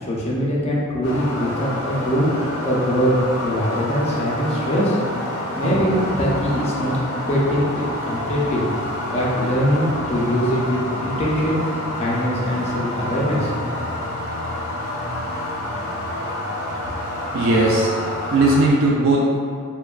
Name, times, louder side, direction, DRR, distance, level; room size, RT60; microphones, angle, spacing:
voice 1, 0.0-2.3 2.6-3.1 3.4-5.0 5.5-7.0 7.3-8.6 9.1-11.6 12.0-13.5, equal, 30° left, -5 dB, 0.5 m, -22 dB
sound 1, 1.0-18.7, left 1 dB, 90° left, 0.4 m, -28 dB
voice 2, 17.3-17.9 18.3-19.2, right 2 dB, 65° right, -4 dB, 0.3 m, -17 dB
3.1 x 2.1 x 2.3 m, 2.2 s
head